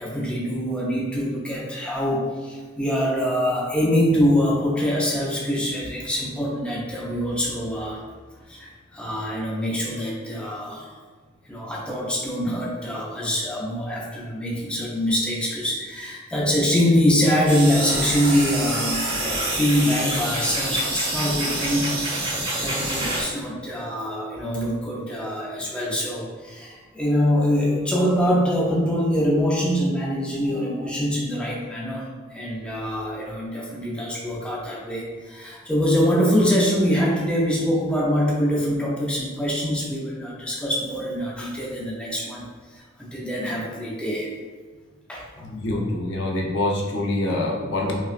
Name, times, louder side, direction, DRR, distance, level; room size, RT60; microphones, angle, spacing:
voice 1, 0.0-8.1 8.4-11.0 11.5-42.5 42.7-44.3 45.1-45.3, equal, 5° left, -4 dB, 0.6 m, -24 dB
sound 1, 17.5-23.2, right 1 dB, 30° right, 1.0 m, -27 dB
voice 2, 45.4-47.9, left 1 dB, 65° left, 0 dB, 0.6 m, -25 dB
5.5 x 2.3 x 2.5 m, 1.4 s
head